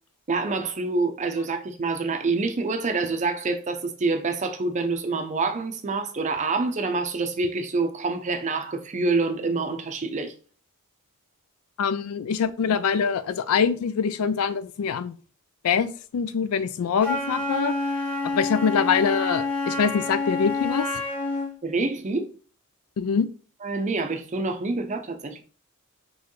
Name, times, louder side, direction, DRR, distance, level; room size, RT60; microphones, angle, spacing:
voice 1, 0.3-10.3 21.6-22.3 23.6-25.4, right 3 dB, 35° right, 0.5 m, -26 dB
voice 2, 11.8-15.1 15.6-17.7 18.3-20.9 23.0-23.3, left 6 dB, 80° left, 0.4 m, -24 dB
Wind instrument woodwind instrument, 17.0-21.5, left 2 dB, 10° left, 1.1 m, -28 dB
4.4 x 3.1 x 3.1 m
head